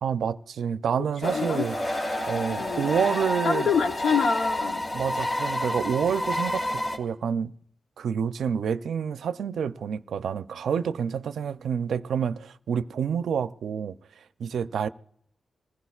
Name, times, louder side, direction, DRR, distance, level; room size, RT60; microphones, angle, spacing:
voice 1, 0.0-1.8 2.3-3.7 4.9-7.5 8.0-14.0 14.4-14.9, right 7 dB, 90° right, 0.4 m, -28 dB
voice 2, 1.2-1.7 2.6-2.9 3.4-4.8, left 6 dB, 85° left, 0.9 m, -26 dB
sound 1, 1.2-7.0, left 1 dB, 45° left, 2.8 m, -29 dB
26.5 x 15.5 x 2.4 m
wide cardioid pair, 95°, 0 cm